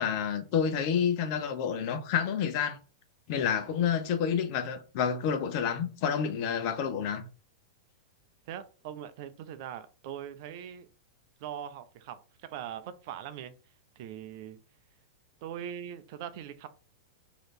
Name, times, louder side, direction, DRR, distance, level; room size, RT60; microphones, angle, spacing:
voice 1, 0.0-2.8 3.3-7.3, left 7 dB, 50° left, 0.8 m, -29 dB
voice 2, 8.5-10.9 11.4-13.5 14.0-14.6 15.4-16.7, right 10 dB, 55° right, 0.5 m, -41 dB
3.2 x 2.9 x 4.1 m
hypercardioid pair, 105°, 2 cm